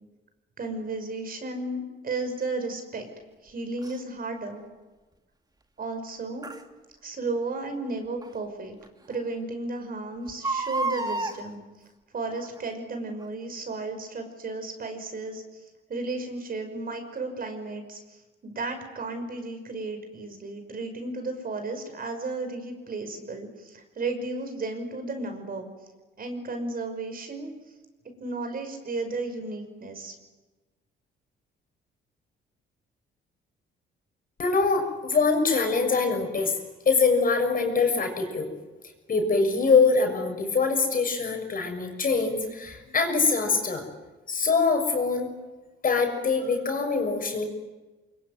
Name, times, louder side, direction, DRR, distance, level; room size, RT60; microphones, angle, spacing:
voice 1, 0.6-3.1 3.4-4.6 5.8-6.5 7.0-8.8 9.1-11.6 12.1-25.7 26.2-27.5 28.2-30.1, right 3 dB, 45° right, 6 dB, 5.8 m, -34 dB
Crying sobbing, 3.8-4.0 6.4-6.6 8.2-8.3 8.8-8.9 9.1-9.2 10.3-11.4 12.3-12.6 13.2-13.3, right 3 dB, 20° right, 2.3 m, -30 dB
voice 2, 34.4-36.6 36.8-38.5 39.1-43.8 44.3-45.3 45.8-47.4, left 4 dB, 45° left, 4 dB, 6.6 m, -24 dB
24.5 x 22.5 x 9.5 m, 1.2 s
cardioid pair, 90°, 20 cm